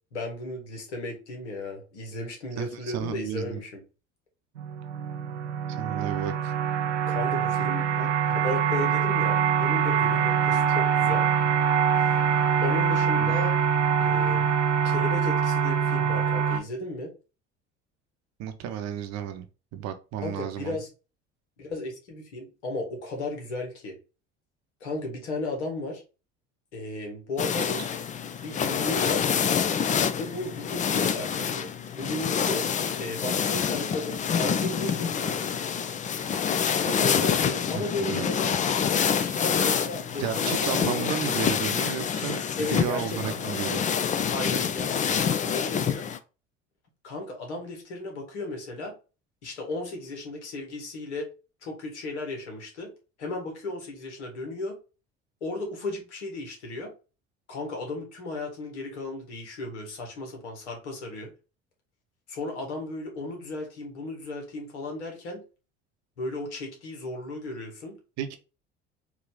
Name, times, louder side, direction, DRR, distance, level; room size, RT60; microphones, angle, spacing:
voice 1, 0.1-3.7 7.1-11.2 12.6-13.5 14.0-14.5 14.8-17.1 20.2-20.9 21.6-23.9 24.8-26.0 26.7-27.9 28.4-29.3 30.1-31.7 31.9-32.7 33.0-35.4 36.8-38.5 39.4-41.0 42.6-43.7 44.3-46.0 47.0-48.9 49.4-51.3 51.6-52.9 53.2-54.7 55.4-56.9 57.5-61.3 62.3-65.4 66.2-67.9, left 2 dB, 75° left, 2 dB, 1.8 m, -35 dB
voice 2, 2.6-3.6 5.8-6.5 13.2-13.4 18.4-19.5 19.7-20.8 27.5-27.9 37.7-37.8 38.1-38.3 39.2-39.4 40.2-43.8 68.2-68.4, right 9 dB, 50° right, 8 dB, 0.8 m, -33 dB
sound 1, 4.6-16.6, right 7 dB, 80° right, 0.5 m, -24 dB
sound 2, 27.4-46.2, left 7 dB, 20° left, 0.4 m, -27 dB
4.8 x 2.8 x 3.8 m, 0.32 s
figure-of-eight pair, 60°, 35 cm